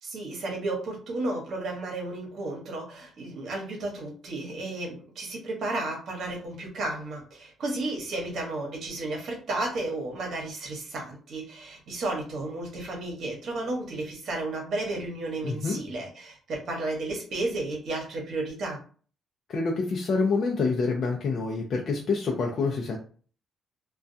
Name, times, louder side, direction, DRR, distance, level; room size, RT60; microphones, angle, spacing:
voice 1, 0.0-18.8, right 2 dB, 65° right, 1 dB, 0.9 m, -33 dB
voice 2, 15.4-15.8 19.5-23.0, left 4 dB, 55° left, 0 dB, 0.4 m, -27 dB
2.2 x 2.2 x 2.6 m, 0.42 s
cardioid pair, 90°, 0 cm